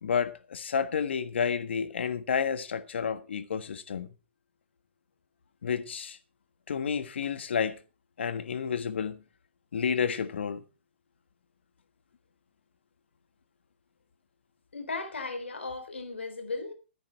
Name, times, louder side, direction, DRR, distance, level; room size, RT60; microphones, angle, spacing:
voice 1, 0.0-4.1 5.6-6.2 6.7-7.8 8.2-9.2 9.7-10.6, left 6 dB, 75° left, 1.5 m, -30 dB
voice 2, 14.7-16.7, left 3 dB, 90° left, 3.7 m, -36 dB
12.5 x 9.9 x 4.6 m
hypercardioid pair, 130°, 6 cm